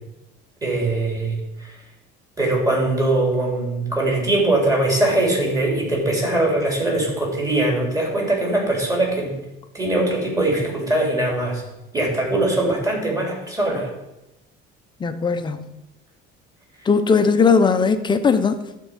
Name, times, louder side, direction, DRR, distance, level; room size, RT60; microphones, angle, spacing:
voice 1, 0.6-1.7 2.4-9.4 9.7-11.6 11.9-13.9, right 2 dB, 15° right, -2 dB, 3.5 m, -21 dB
voice 2, 15.0-15.7 16.9-18.6, left 5 dB, 20° left, 9 dB, 0.7 m, -18 dB
11.5 x 4.6 x 8.3 m, 0.93 s
cardioid pair, 145°, 21 cm